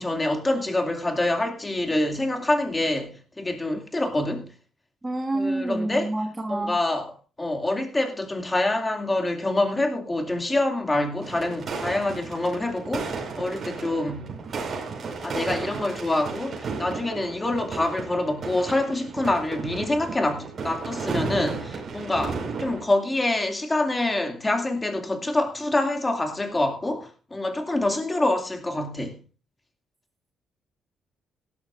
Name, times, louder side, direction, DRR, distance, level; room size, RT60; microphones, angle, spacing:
voice 1, 0.0-4.5 5.3-6.1 6.5-14.3 15.2-29.2, left 2 dB, 20° left, 2.4 m, -26 dB
voice 2, 5.0-6.8, right 2 dB, 20° right, 1.5 m, -28 dB
sound 1, 11.2-22.8, right 4 dB, 50° right, 5.0 m, -34 dB
17.5 x 12.0 x 2.6 m
cardioid pair, 90°, 0 cm